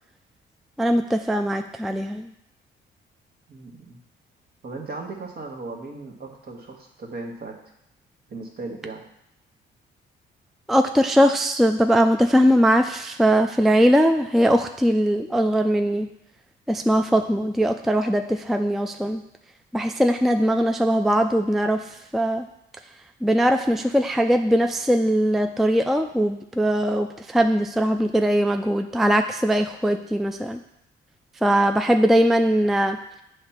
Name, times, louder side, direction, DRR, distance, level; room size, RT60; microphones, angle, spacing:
voice 1, 0.8-2.3 10.7-16.1 16.7-19.2 19.7-21.8 22.1-22.5 23.2-30.6 31.4-33.0, equal, ahead, 6 dB, 0.3 m, -20 dB
voice 2, 3.5-4.0 4.6-7.6 8.3-9.0, right 3 dB, 55° right, 1 dB, 1.4 m, -37 dB
8.4 x 3.5 x 5.8 m, 0.80 s
cardioid pair, 90°, 20 cm